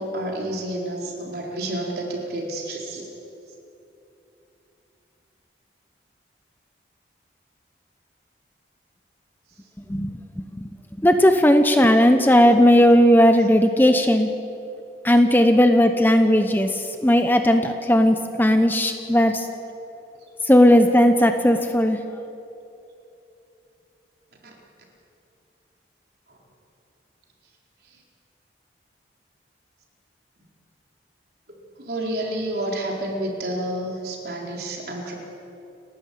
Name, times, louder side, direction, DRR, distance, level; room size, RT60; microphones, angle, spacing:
voice 1, 0.0-3.1 26.3-26.4 31.8-35.1, right 1 dB, 55° right, -1 dB, 4.4 m, -29 dB
voice 2, 11.0-14.3 15.0-19.5 20.4-22.0, equal, 10° left, 7 dB, 0.9 m, -16 dB
30.0 x 12.5 x 8.6 m, 2.9 s
head